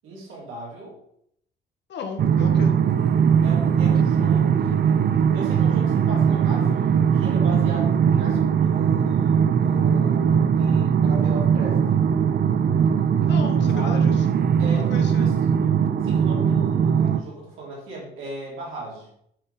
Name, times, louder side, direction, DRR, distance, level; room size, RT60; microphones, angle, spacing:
voice 1, 0.0-1.0 3.4-5.0 5.3-12.0 13.7-14.1 14.6-15.3 15.6-15.7 16.0-19.1, right 2 dB, 85° right, -4 dB, 3.1 m, -37 dB
voice 2, 1.9-2.8 13.2-14.2 14.7-15.3, left 5 dB, 65° left, 4 dB, 1.2 m, -34 dB
sound 1, 2.2-17.2, right 7 dB, 55° right, 0.6 m, -20 dB
9.7 x 4.1 x 3.8 m, 0.71 s
cardioid pair, 90°, 20 cm